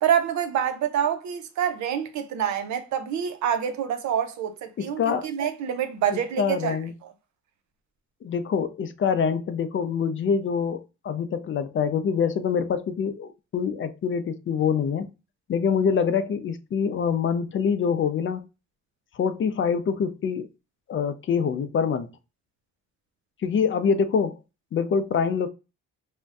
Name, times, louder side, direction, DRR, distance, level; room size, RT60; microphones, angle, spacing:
voice 1, 0.0-6.8, right 9 dB, 70° right, 0.6 m, -26 dB
voice 2, 4.8-5.3 6.1-6.9 8.2-15.1 15.5-18.4 19.1-20.5 20.9-22.1 23.4-24.4 24.7-25.5, left 6 dB, 40° left, 0.4 m, -25 dB
2.5 x 2.1 x 3.4 m
cardioid pair, 90°, 30 cm